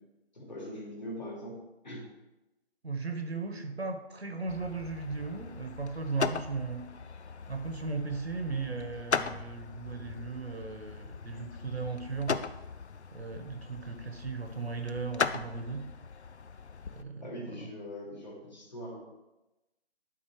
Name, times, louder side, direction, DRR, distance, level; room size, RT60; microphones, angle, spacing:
voice 1, 0.3-2.1 17.2-19.0, equal, 40° left, -4 dB, 3.1 m, -42 dB
voice 2, 2.8-6.9 7.5-12.4 13.1-15.9 16.9-17.6, right 4 dB, 70° right, 7 dB, 1.2 m, -37 dB
sound 1, 4.5-17.0, left 5 dB, 85° left, 0.6 m, -38 dB
11.5 x 3.9 x 4.8 m, 0.99 s
figure-of-eight pair, 170°, 33 cm